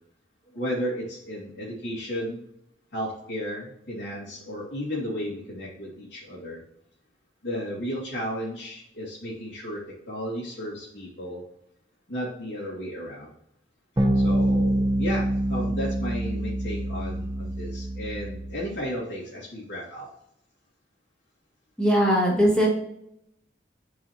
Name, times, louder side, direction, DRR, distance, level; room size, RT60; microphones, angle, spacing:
voice 1, 0.5-2.4 2.9-6.6 7.4-9.8 10.1-11.4 12.1-13.3 14.1-20.1, equal, 75° left, -8 dB, 2.3 m, -33 dB
sound 1, 14.0-18.7, right 1 dB, 20° right, 1.2 m, -26 dB
voice 2, 21.8-22.7, equal, 5° left, -5 dB, 2.4 m, -20 dB
10.0 x 4.7 x 3.0 m, 0.77 s
head